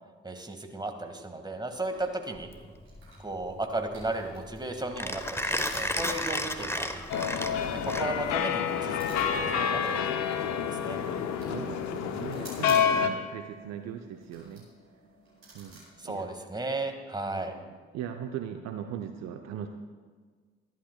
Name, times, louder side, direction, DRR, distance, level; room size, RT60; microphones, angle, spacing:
voice 1, 0.2-2.5 3.2-7.3 7.8-11.0 16.0-17.5, right 2 dB, 15° right, 5 dB, 2.0 m, -35 dB
sound 1, 1.4-17.0, right 2 dB, 80° right, 4.8 m, -52 dB
Mechanisms, 2.4-8.5, left 1 dB, 10° left, 1.1 m, -33 dB
sound 2, 7.1-13.1, left 7 dB, 60° left, 1.0 m, -28 dB
voice 2, 11.4-14.7 15.5-16.3 17.2-19.7, right 9 dB, 60° right, 6 dB, 0.8 m, -39 dB
26.0 x 11.5 x 2.3 m, 1.5 s
figure-of-eight pair, 40°, 31 cm